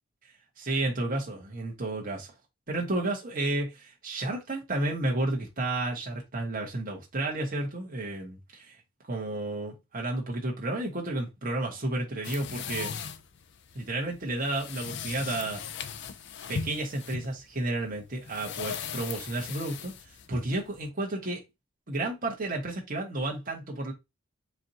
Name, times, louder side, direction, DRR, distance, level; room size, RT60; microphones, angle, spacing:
voice 1, 0.6-2.3 2.7-8.7 9.1-13.0 13.7-15.6 16.5-19.9 20.3-21.4 21.9-23.9, right 2 dB, 40° right, 1.4 m, -32 dB
sound 1, 12.2-20.9, left 7 dB, 55° left, 0.4 m, -38 dB
4.7 x 2.6 x 2.8 m
head